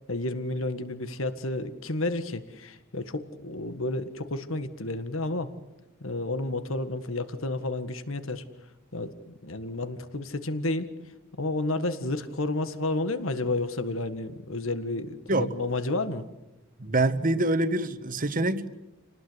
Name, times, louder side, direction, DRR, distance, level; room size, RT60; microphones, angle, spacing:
voice 1, 0.1-5.5 6.0-8.4 8.9-9.1 9.4-10.9 11.4-16.3, left 2 dB, 75° left, 11 dB, 1.8 m, -31 dB
voice 2, 16.8-18.7, right 2 dB, 45° right, 11 dB, 1.5 m, -25 dB
29.0 x 19.0 x 8.1 m, 0.98 s
head